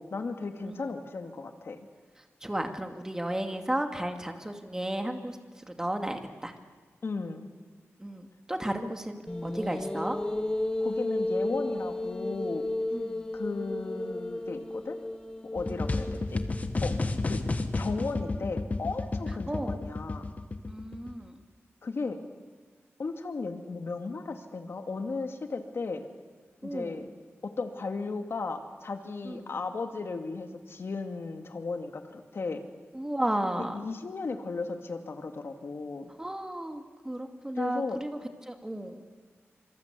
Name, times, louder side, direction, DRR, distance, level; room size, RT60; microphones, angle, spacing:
voice 1, 0.0-1.9 7.0-7.5 8.8-8.9 10.8-12.6 13.3-15.0 15.5-16.4 16.8-16.9 17.2-17.4 17.8-20.2 21.8-22.2 23.0-26.0 26.6-27.1 27.4-32.7 33.6-36.1 37.5-38.0, left 4 dB, 60° left, 5 dB, 2.4 m, -35 dB
voice 2, 2.4-6.5 8.0-10.2 12.9-13.2 15.7-15.8 19.5-19.8 20.7-21.4 26.6-27.1 29.2-29.4 32.9-33.9 36.2-38.2 38.5-39.0, right 1 dB, 10° right, 5 dB, 2.3 m, -34 dB
sound 1, 9.3-16.7, left 1 dB, 15° left, 1.1 m, -33 dB
sound 2, 15.6-21.2, left 3 dB, 30° left, 1.8 m, -31 dB
26.0 x 25.0 x 8.4 m, 1.5 s
wide cardioid pair, 125°, 5 cm